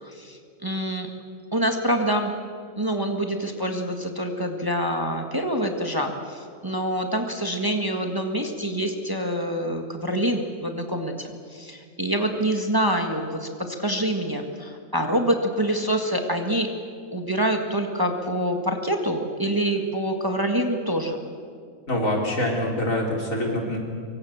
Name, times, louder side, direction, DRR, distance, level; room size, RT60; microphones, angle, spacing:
voice 1, 0.0-1.1 1.5-2.3 2.8-16.7 17.1-21.2, right 1 dB, 15° right, 4 dB, 1.8 m, -26 dB
voice 2, 21.9-23.8, left 1 dB, 70° left, 0 dB, 4.5 m, -25 dB
25.5 x 23.5 x 7.3 m, 2.2 s
omnidirectional pair, 1.4 m